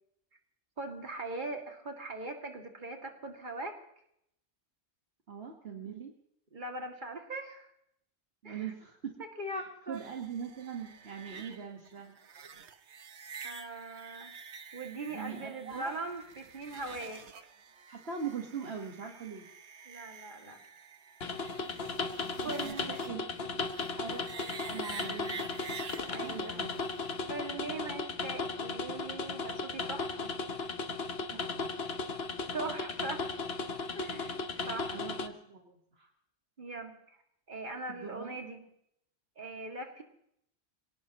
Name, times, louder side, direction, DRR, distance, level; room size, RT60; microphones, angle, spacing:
voice 1, 0.8-3.8 5.9-6.0 6.5-7.7 8.4-8.7 9.4-10.0 13.4-14.3 14.7-17.5 19.9-20.6 22.4-23.0 23.4-23.6 26.1-26.6 27.3-30.3 32.5-33.3 33.9-34.4 34.7-35.0 36.6-37.0 37.5-38.7 39.4-40.0, right 2 dB, 45° right, 3 dB, 2.5 m, -40 dB
voice 2, 5.3-6.1 8.4-9.2 9.5-9.6 9.9-12.2 15.1-15.9 17.9-19.5 22.4-23.2 24.0-25.6 26.2-26.8 31.3-31.7 34.6-36.1 37.9-38.3, right 6 dB, 65° right, 2 dB, 1.8 m, -42 dB
sound 1, 9.9-27.8, right 6 dB, 85° right, 1.3 m, -49 dB
sound 2, 21.2-35.3, left 4 dB, 65° left, 1.4 m, -36 dB
26.5 x 18.5 x 3.0 m, 0.74 s
omnidirectional pair, 1.1 m